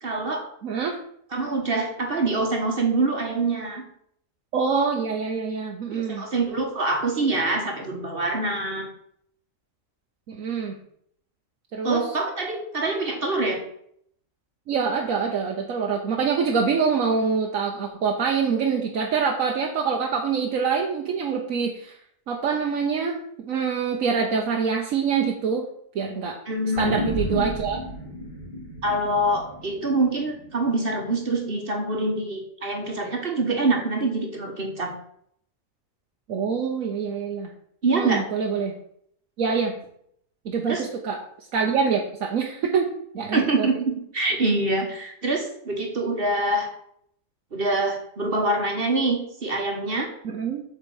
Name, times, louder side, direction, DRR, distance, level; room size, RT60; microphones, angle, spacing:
voice 1, 0.0-0.5 1.3-3.8 5.9-8.9 11.8-13.6 26.5-27.1 28.8-34.9 37.8-38.3 40.7-40.8 43.3-46.7 47.5-50.1, right 2 dB, 45° right, 3 dB, 1.4 m, -25 dB
voice 2, 0.6-1.0 4.5-6.3 10.3-10.8 11.7-12.1 14.7-22.0 22.3-25.7 25.9-26.4 26.8-27.8 36.3-37.5 37.9-38.8 39.4-39.7 40.4-42.9 43.1-43.7 50.2-50.6, right 6 dB, 80° right, 1 dB, 1.3 m, -25 dB
sound 1, 26.7-31.5, equal, 35° left, 3.0 m, -32 dB
8.0 x 4.4 x 7.1 m, 0.69 s
omnidirectional pair, 1.4 m